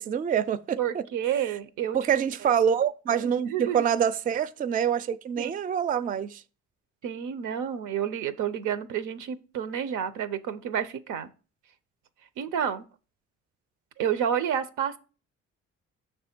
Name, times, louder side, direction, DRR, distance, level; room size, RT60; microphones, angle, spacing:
voice 1, 0.0-1.0 1.9-6.4, right 8 dB, 30° right, 0.4 m, -26 dB
voice 2, 0.8-2.0 3.5-3.8 5.4-5.5 7.0-11.3 12.4-12.9 14.0-15.0, right 9 dB, 85° right, 0.7 m, -29 dB
6.2 x 3.4 x 5.9 m
cardioid pair, 90°, 30 cm